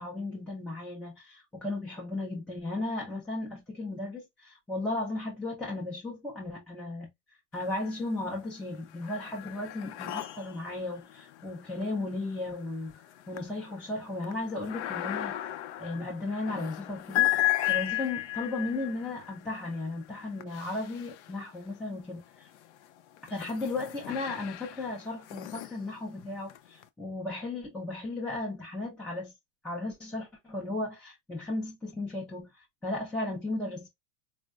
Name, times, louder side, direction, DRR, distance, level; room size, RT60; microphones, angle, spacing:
voice 1, 0.0-7.1 7.5-12.9 13.3-15.4 15.8-22.5 23.3-29.3 29.6-32.5 32.8-33.9, left 2 dB, 5° left, 0.4 m, -35 dB
sound 1, 7.5-8.2 8.6-21.7 22.4-26.8, left 16 dB, 55° left, 0.6 m, -35 dB
4.4 x 2.1 x 2.3 m
supercardioid pair, 150°, 42 cm